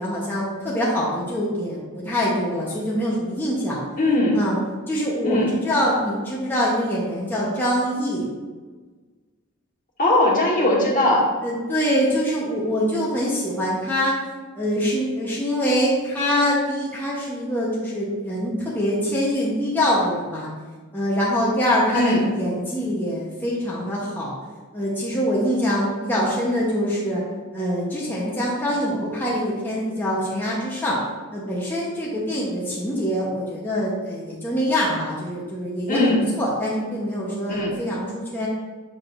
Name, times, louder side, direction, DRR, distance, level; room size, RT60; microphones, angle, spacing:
voice 1, 0.0-3.8 4.3-4.6 4.9-8.3 11.4-14.1 14.6-20.5 20.9-24.3 24.7-27.2 27.5-31.0 31.3-38.5, equal, 10° left, -6 dB, 0.9 m, -24 dB
voice 2, 4.0-4.4 5.2-5.5 10.0-11.3 21.9-22.2 35.9-36.2 37.5-37.7, left 1 dB, 40° left, -3 dB, 1.4 m, -19 dB
6.7 x 6.3 x 2.5 m, 1.4 s
head